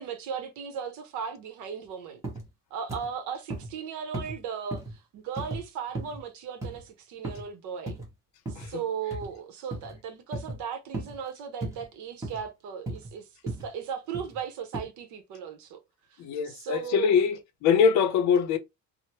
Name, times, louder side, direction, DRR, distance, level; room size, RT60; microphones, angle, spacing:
voice 1, 0.0-2.2 2.7-8.0 8.5-15.8 16.1-17.2, right 7 dB, 70° right, 0.8 m, -37 dB
sound 1, 2.2-2.5 2.9-3.1 3.5-3.7 4.1-4.4 4.7-4.9 5.4-5.6 6.0-6.2 6.6-6.8 7.2-7.5 7.9-8.1 8.5-8.7 9.1-9.3 9.7-10.0 10.3-10.6 10.9-11.2 11.6-11.8 12.2-12.4 12.9-13.1 13.5-13.7 14.1-14.4 14.7-14.8, right 2 dB, 10° right, 0.9 m, -35 dB
voice 2, 16.2-17.4 17.6-18.6, left 7 dB, 60° left, 0.6 m, -23 dB
3.2 x 2.0 x 2.8 m
cardioid pair, 160°, 31 cm